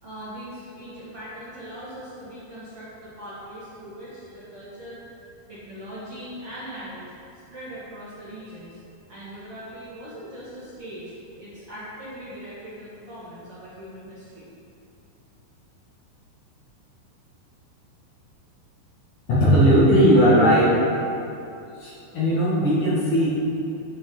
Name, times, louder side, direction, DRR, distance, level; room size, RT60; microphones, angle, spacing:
voice 1, 0.0-8.8 9.1-14.5, equal, 45° right, -12 dB, 2.2 m, -40 dB
voice 2, 19.4-20.8 21.8-23.3, equal, 55° left, -9 dB, 3.2 m, -17 dB
9.8 x 8.6 x 4.0 m, 2.7 s
omnidirectional pair, 4.9 m